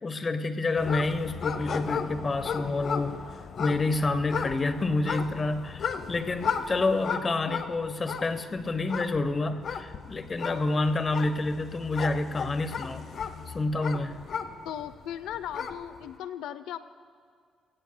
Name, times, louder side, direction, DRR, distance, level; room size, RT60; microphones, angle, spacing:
voice 1, 0.0-3.2 3.6-13.1 13.5-14.2, left 2 dB, 35° left, 10 dB, 1.0 m, -28 dB
sound 1, 0.8-14.9 15.3-16.0, left 6 dB, 55° left, 0.8 m, -35 dB
voice 2, 14.6-16.8, left 10 dB, 90° left, 13 dB, 0.6 m, -37 dB
22.5 x 16.5 x 2.2 m, 2.2 s
cardioid pair, 90°, 0 cm